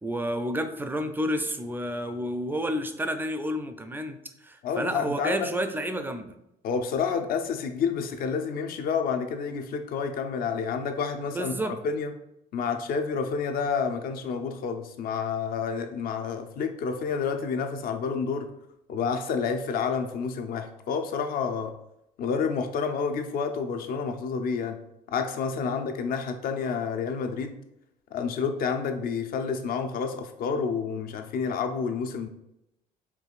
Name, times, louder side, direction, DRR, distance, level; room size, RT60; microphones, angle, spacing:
voice 1, 0.0-6.3 11.3-11.7 25.6-25.8, equal, 10° right, 7 dB, 0.4 m, -30 dB
voice 2, 4.6-5.5 6.6-12.1 12.5-18.5 18.9-21.7 22.2-24.8 25.1-27.6 28.1-32.3, left 5 dB, 60° left, 7 dB, 0.6 m, -29 dB
4.6 x 3.0 x 2.4 m, 0.84 s
cardioid pair, 110°, 17 cm